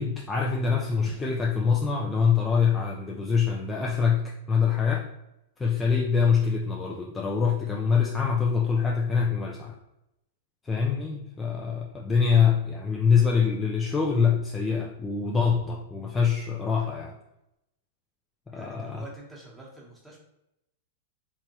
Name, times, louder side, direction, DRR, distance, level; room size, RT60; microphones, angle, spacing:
voice 1, 0.0-5.1 5.6-9.8 10.6-17.2 18.5-19.0, left 6 dB, 15° left, -2 dB, 0.4 m, -24 dB
voice 2, 18.5-20.2, right 2 dB, 5° right, -4 dB, 1.1 m, -46 dB
3.4 x 2.9 x 2.9 m, 0.86 s
hypercardioid pair, 120°, 0 cm